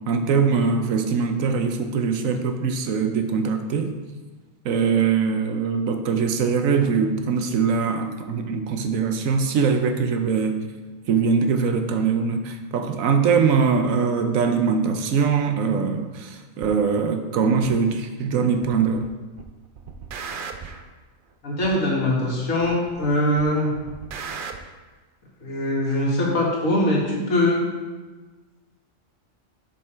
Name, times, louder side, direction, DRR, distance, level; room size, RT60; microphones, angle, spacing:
voice 1, 0.1-3.9 4.6-10.6 11.1-19.1, right 5 dB, 85° right, 7 dB, 1.1 m, -22 dB
sound 1, 16.6-16.7 17.6-17.7 18.6-19.1 19.4-20.8 21.6-21.7 22.6-23.1 23.4-24.6, right 5 dB, 55° right, 0.6 m, -36 dB
voice 2, 21.4-23.7 25.4-27.6, left 1 dB, 85° left, -4 dB, 2.2 m, -22 dB
7.2 x 5.5 x 4.4 m, 1.3 s
omnidirectional pair, 1.4 m